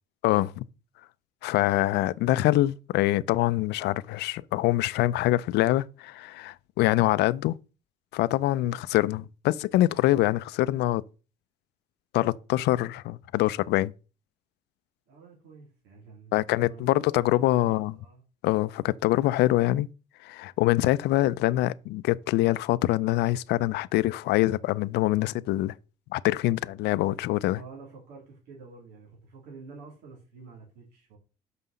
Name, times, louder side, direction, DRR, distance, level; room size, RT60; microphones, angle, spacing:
voice 1, 0.2-0.6 1.4-7.6 8.1-11.0 12.1-13.9 16.3-17.9 18.4-19.9 20.2-25.7 26.1-27.6, left 16 dB, 80° left, 0.5 m, -24 dB
voice 2, 15.1-18.2 27.5-31.2, right 4 dB, 85° right, 3.4 m, -49 dB
6.0 x 5.7 x 6.7 m
cardioid pair, 110°, 17 cm